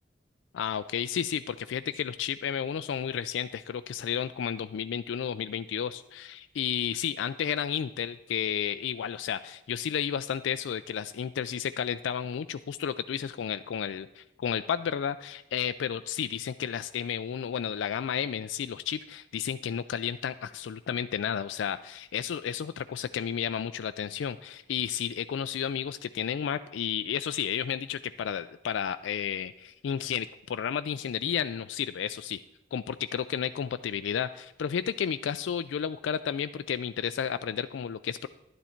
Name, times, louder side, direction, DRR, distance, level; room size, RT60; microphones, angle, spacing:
voice 1, 0.5-32.4 32.7-38.3, left 8 dB, 85° left, 11 dB, 0.3 m, -32 dB
11.0 x 9.5 x 4.4 m, 0.88 s
head